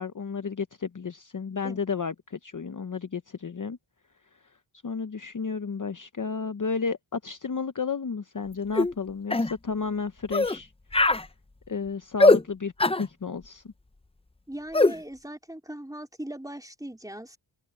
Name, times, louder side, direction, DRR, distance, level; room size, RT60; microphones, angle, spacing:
voice 1, 0.0-3.8 4.8-10.7 11.7-12.7 13.0-13.6, left 5 dB, 45° left, 0.8 m, -32 dB
sound 1, 8.8-8.9 9.3-9.5 10.3-10.6 10.9-11.2 12.2-12.4 12.8-13.0 14.7-14.9, left 2 dB, 15° left, 0.5 m, -20 dB
voice 2, 14.5-17.4, right 1 dB, 10° right, 3.8 m, -39 dB
open air
wide cardioid pair, 75°, 46 cm